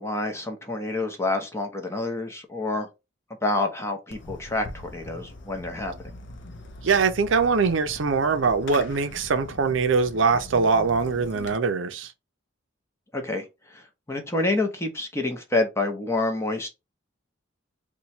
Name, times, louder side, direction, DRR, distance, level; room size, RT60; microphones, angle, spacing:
voice 1, 0.0-2.9 3.4-6.1 13.1-16.7, left 2 dB, 15° left, 0.6 m, -28 dB
Fireworks, 4.1-11.5, left 2 dB, 60° left, 0.6 m, -42 dB
voice 2, 6.8-12.1, right 4 dB, 65° right, 0.5 m, -22 dB
2.9 x 2.2 x 4.1 m
head